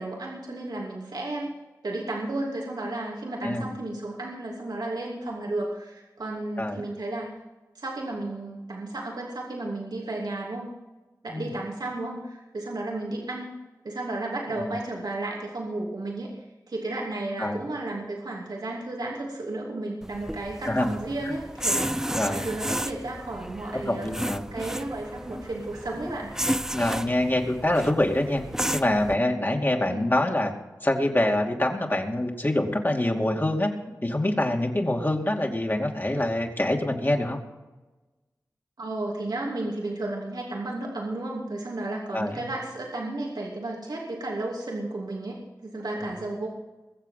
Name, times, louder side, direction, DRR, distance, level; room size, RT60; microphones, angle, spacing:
voice 1, 0.0-1.5 1.8-7.3 7.7-10.7 11.2-13.5 13.8-16.3 16.7-24.1 24.5-26.3 29.9-30.1 38.8-46.5, right 2 dB, 85° right, -2 dB, 2.8 m, -33 dB
sound 1, 20.0-29.2, equal, 5° right, 0.6 m, -32 dB
voice 2, 20.6-21.0 22.2-22.5 23.7-24.5 26.7-28.4 28.7-30.5 30.8-33.7 34.0-37.4 42.1-42.5 46.0-46.1, left 1 dB, 30° left, 2 dB, 2.6 m, -25 dB
21.5 x 7.6 x 5.8 m, 1.1 s
cardioid pair, 45°, 7 cm